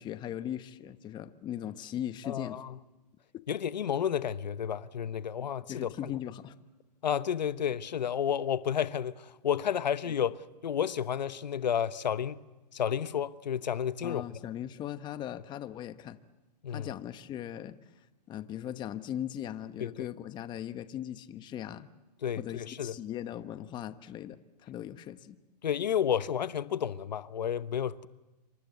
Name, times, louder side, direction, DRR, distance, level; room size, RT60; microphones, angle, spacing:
voice 1, 0.0-2.6 3.3-3.4 5.7-6.5 14.0-16.2 16.7-17.8 18.3-21.9 22.4-25.4, left 11 dB, 20° left, 1.1 m, -39 dB
voice 2, 2.2-2.7 3.5-6.1 7.0-12.4 12.7-14.2 16.6-16.9 19.8-20.1 22.2-22.9 25.6-28.1, left 8 dB, 90° left, 1.0 m, -31 dB
27.5 x 25.5 x 8.2 m
hypercardioid pair, 140°, 21 cm